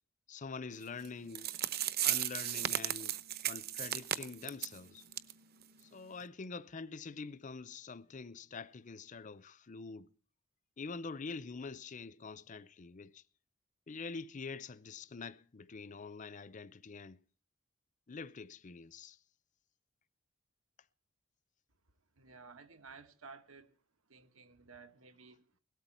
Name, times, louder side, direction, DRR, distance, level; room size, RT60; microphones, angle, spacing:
voice 1, 0.3-1.5 2.0-3.2 3.5-5.0 5.8-10.1 10.8-13.2 13.9-17.2 18.1-19.2, left 4 dB, 35° left, 0.6 m, -45 dB
sound 1, 1.0-1.1 1.3-4.8 5.1-5.3 5.6-5.7 6.2-6.3, right 11 dB, 50° right, 0.8 m, -35 dB
voice 2, 22.1-23.8 24.1-25.6, right 4 dB, 85° right, 1.8 m, -55 dB
17.5 x 13.0 x 4.3 m
head